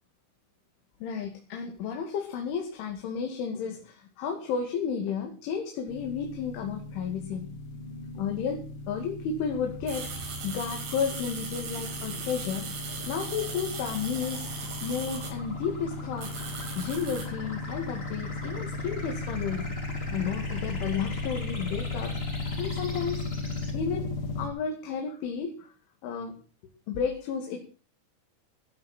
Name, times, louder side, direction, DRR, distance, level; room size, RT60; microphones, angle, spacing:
voice 1, 1.0-12.7 13.0-16.3 16.8-19.7 20.1-22.2 22.6-23.3 23.7-24.1 24.4-25.7 26.0-26.4 26.9-27.6, left 6 dB, 90° left, 3 dB, 4.9 m, -32 dB
sound 1, 5.9-24.5, left 3 dB, 65° left, 4.4 m, -36 dB
sound 2, 9.5-23.7, left 1 dB, 15° left, 4.3 m, -44 dB
sound 3, 9.9-15.3 16.2-17.3, right 5 dB, 85° right, 6.6 m, -39 dB
17.5 x 14.0 x 4.5 m, 0.36 s
omnidirectional pair, 5.3 m